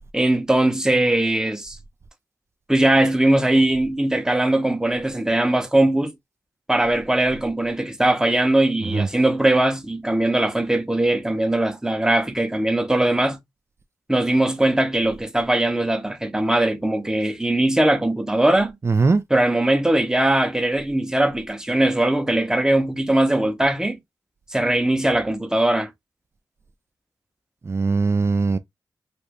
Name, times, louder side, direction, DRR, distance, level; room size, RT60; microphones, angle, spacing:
voice 1, 0.1-1.8 2.7-6.1 6.7-13.4 14.1-18.8 19.3-24.0 24.5-25.9, right 1 dB, 10° right, 0.9 m, -20 dB
voice 2, 18.8-19.2 27.6-28.6, right 4 dB, 35° right, 0.4 m, -20 dB
2.7 x 2.6 x 3.3 m
cardioid pair, 50°, 7 cm